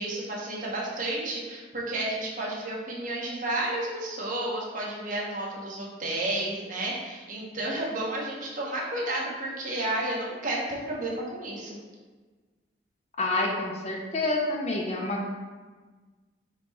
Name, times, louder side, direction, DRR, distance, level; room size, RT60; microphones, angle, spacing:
voice 1, 0.0-11.8, right 1 dB, 50° right, -4 dB, 1.0 m, -31 dB
voice 2, 13.2-15.3, left 2 dB, 40° left, 0 dB, 0.6 m, -28 dB
4.3 x 2.9 x 4.1 m, 1.4 s
head